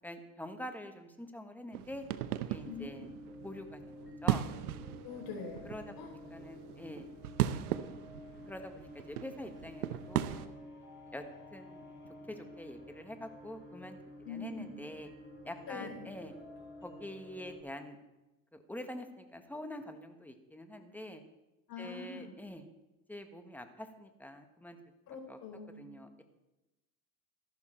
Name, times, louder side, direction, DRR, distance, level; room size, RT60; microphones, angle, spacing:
voice 1, 0.0-2.0 2.4-3.2 3.4-4.5 5.6-7.1 8.5-10.5 11.1-11.2 11.5-11.8 12.3-14.0 14.3-15.1 15.4-16.3 16.8-18.0 18.5-21.2 21.8-22.7 23.1-24.8 25.3-25.4 25.8-26.2, left 1 dB, 5° left, 6 dB, 1.5 m, -45 dB
sound 1, 1.7-10.5, right 12 dB, 85° right, 0.9 m, -38 dB
voice 2, 2.6-3.1 5.0-5.7 6.0-6.1 14.3-14.8 15.7-16.1 21.7-22.3 25.1-25.9, left 4 dB, 50° left, 0 dB, 5.3 m, -44 dB
sound 2, 2.6-17.6, left 1 dB, 25° left, 5.5 m, -51 dB
14.0 x 12.0 x 4.5 m, 1.0 s
supercardioid pair, 100°, 44 cm